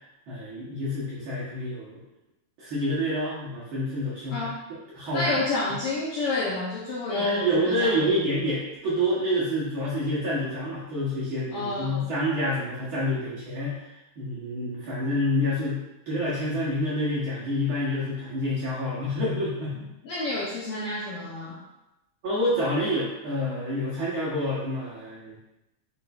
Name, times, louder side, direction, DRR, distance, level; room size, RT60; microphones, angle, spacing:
voice 1, 0.3-2.0 2.6-4.5 4.9-5.3 7.1-13.8 14.2-19.9 22.2-25.3, left 1 dB, 60° right, -8 dB, 1.5 m, -28 dB
voice 2, 5.1-8.2 11.5-12.0 20.0-21.6, left 2 dB, 75° left, -5 dB, 1.4 m, -30 dB
5.2 x 4.3 x 2.4 m, 0.93 s
omnidirectional pair, 3.3 m